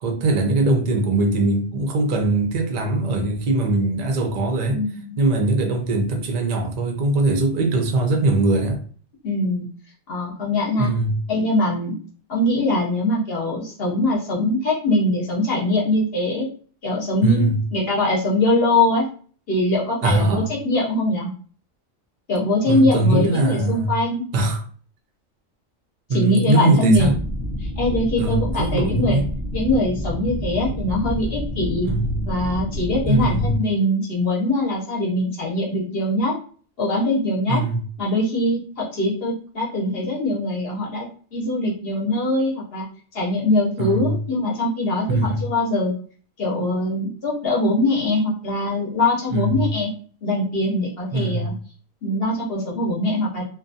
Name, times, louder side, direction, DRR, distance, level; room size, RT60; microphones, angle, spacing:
voice 1, 0.0-4.8 5.2-8.8 10.8-11.2 17.2-17.6 20.0-20.5 22.6-23.9 24.3-24.6 26.1-27.1 28.2-29.3 31.8-32.2 33.1-33.6 37.5-37.8 43.8-44.2 45.1-45.5 49.3-49.7 51.1-51.5, right 2 dB, 55° right, 0.4 m, -21 dB
voice 2, 4.7-5.2 9.2-9.7 10.1-10.9 11.3-11.9 12.3-16.5 16.8-19.1 19.5-21.3 22.3-24.2 26.1-27.1 27.6-29.2 29.5-31.9 32.3-36.3 36.8-37.6 38.0-42.8 43.1-45.9 46.4-49.9 50.2-51.5 52.0-53.4, left 1 dB, 55° left, 0.8 m, -22 dB
sound 1, 26.9-33.6, equal, 15° left, 0.3 m, -28 dB
2.5 x 2.2 x 2.6 m
omnidirectional pair, 1.4 m